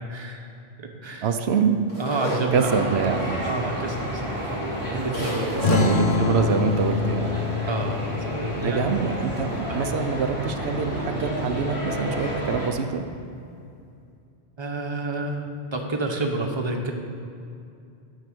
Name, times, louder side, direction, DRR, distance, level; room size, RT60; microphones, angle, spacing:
voice 1, 0.1-0.5 0.8-1.3 2.0-2.7 3.4-5.6 7.7-8.9 9.7-10.0 14.6-16.9, right 2 dB, 25° right, 2 dB, 1.0 m, -30 dB
voice 2, 1.2-1.8 2.5-3.3 5.7-7.4 8.6-13.0, right 6 dB, 90° right, 7 dB, 1.0 m, -25 dB
sound 1, 1.9-3.8 4.4-4.5 4.7-4.8 5.1-5.8, equal, 75° left, 3.0 m, -32 dB
sound 2, 2.5-12.7, equal, 30° left, 2.2 m, -31 dB
sound 3, 5.6-10.7, left 4 dB, 55° left, 0.9 m, -27 dB
10.5 x 5.8 x 7.8 m, 2.5 s
omnidirectional pair, 1.1 m